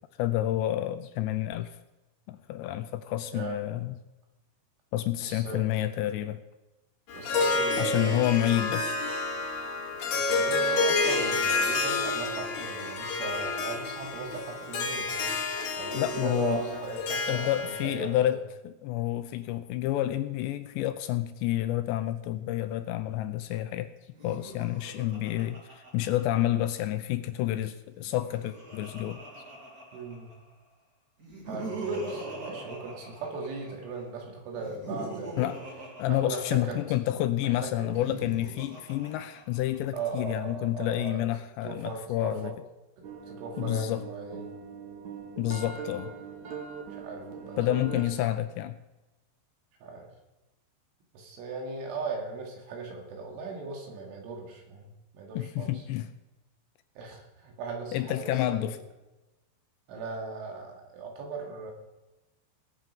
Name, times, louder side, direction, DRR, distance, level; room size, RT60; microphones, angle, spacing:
voice 1, 0.2-1.8 2.3-4.0 4.9-6.4 7.8-9.0 15.9-16.6 17.3-18.4 18.6-23.9 24.2-29.2 35.4-35.6 36.0-42.5 43.6-44.0 45.4-46.1 47.6-48.8 55.4-56.1 57.9-58.8, left 14 dB, 85° left, 10 dB, 2.6 m, -29 dB
voice 2, 3.3-3.6 5.2-5.7 7.1-8.3 10.1-15.4 15.8-18.4 29.9-30.3 31.5-35.5 36.1-36.8 37.4-37.9 39.9-41.3 41.6-42.5 43.3-44.6 46.9-47.6 47.9-48.2 49.8-50.1 51.1-55.8 57.0-58.8 59.9-61.7, right 4 dB, 85° right, 1 dB, 4.8 m, -38 dB
Harp, 7.1-18.0, left 3 dB, 55° left, 2.2 m, -29 dB
Laughter, 24.1-26.9 27.9-30.5 31.2-33.9 34.6-37.0 37.8-40.0, right 2 dB, 45° right, 1.2 m, -41 dB
sound 1, 43.0-48.1, right 6 dB, 60° right, 2.2 m, -41 dB
19.5 x 7.9 x 5.5 m, 1.0 s
omnidirectional pair, 5.4 m